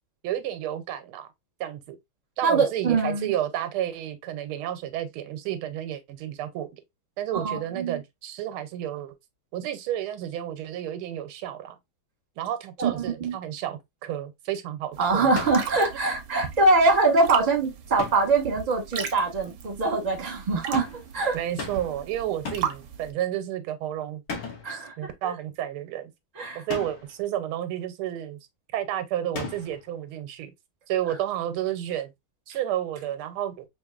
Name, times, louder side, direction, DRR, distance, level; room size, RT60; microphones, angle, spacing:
voice 1, 0.2-1.3 1.6-2.0 2.4-6.7 7.2-9.1 9.5-11.8 12.4-15.3 21.3-24.2 24.7-26.1 26.5-28.4 28.7-30.5 30.9-32.1 32.5-33.7, right 11 dB, 90° right, 1.6 m, -31 dB
voice 2, 2.4-3.3 7.3-8.0 12.8-13.4 15.0-20.9 21.1-21.4 24.6-25.1 26.4-26.6, right 3 dB, 25° right, 1.0 m, -23 dB
sound 1, 14.9-23.1, right 8 dB, 70° right, 1.1 m, -38 dB
sound 2, 15.4-15.8 18.0-18.4 20.7-21.1 21.6-22.0 22.5-22.8 24.3-24.8 26.7-27.1 29.3-29.9, left 4 dB, 60° left, 1.6 m, -36 dB
4.5 x 2.8 x 2.3 m
omnidirectional pair, 2.3 m